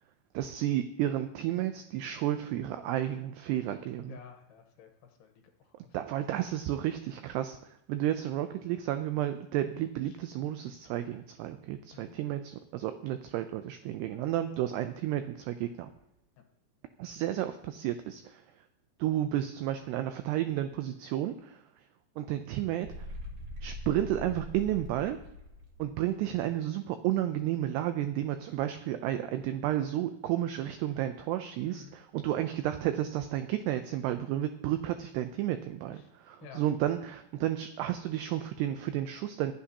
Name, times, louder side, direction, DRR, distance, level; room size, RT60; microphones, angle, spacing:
voice 1, 0.3-4.2 5.9-7.6 7.9-15.9 17.0-18.4 19.0-21.6 22.2-22.9 23.6-25.2 25.8-39.5, right 12 dB, 90° right, 9 dB, 2.3 m, -32 dB
voice 2, 4.1-6.1 10.0-10.2 11.9-12.2 16.4-16.5 31.7-32.0 35.9-36.1 36.4-36.6, left 8 dB, 70° left, 4 dB, 3.0 m, -53 dB
sound 1, 22.8-26.4, left 1 dB, 50° right, 1.8 m, -43 dB
24.5 x 8.4 x 2.9 m, 0.85 s
omnidirectional pair, 5.4 m